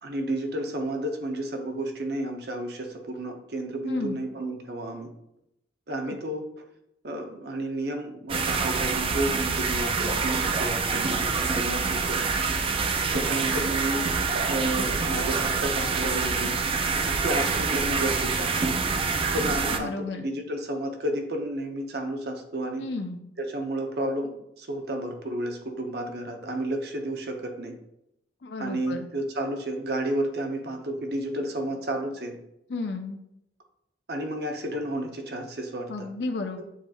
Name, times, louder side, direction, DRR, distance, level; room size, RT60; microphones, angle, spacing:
voice 1, 0.0-5.1 5.9-6.5 7.0-12.3 13.1-14.0 14.5-16.8 17.1-18.7 19.3-22.9 23.4-27.8 28.6-32.4 34.1-36.1 36.5-36.6, right 1 dB, 60° right, 4 dB, 0.6 m, -31 dB
voice 2, 3.9-4.2 6.1-6.2 19.7-20.2 22.8-23.2 28.4-29.1 32.7-33.2 35.9-36.6, left 3 dB, 70° left, 5 dB, 0.5 m, -33 dB
sound 1, 8.3-19.8, right 4 dB, 30° right, 0.3 m, -26 dB
7.2 x 2.9 x 2.3 m, 0.80 s
head